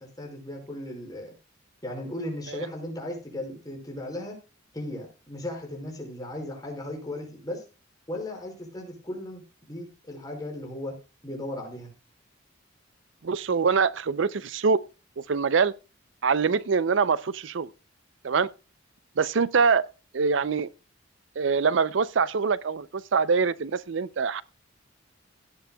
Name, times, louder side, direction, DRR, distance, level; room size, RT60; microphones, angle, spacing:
voice 1, 0.0-1.3 1.8-4.4 4.7-7.6 8.1-11.0 11.2-11.9, left 1 dB, 20° left, 5.2 m, -36 dB
voice 2, 13.2-14.8 15.3-15.7 16.2-17.7 18.2-18.5 19.2-19.8 20.1-20.7 21.4-24.4, right 5 dB, 65° right, 0.5 m, -24 dB
17.0 x 10.5 x 2.3 m
head